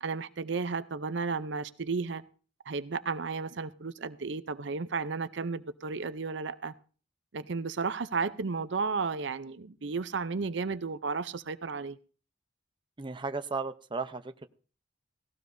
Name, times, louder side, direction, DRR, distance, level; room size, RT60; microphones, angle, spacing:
voice 1, 0.0-2.2 2.7-6.7 7.3-12.0, right 4 dB, 65° right, 0.6 m, -33 dB
voice 2, 13.0-14.5, right 4 dB, 25° right, 0.7 m, -35 dB
17.5 x 17.0 x 2.7 m
head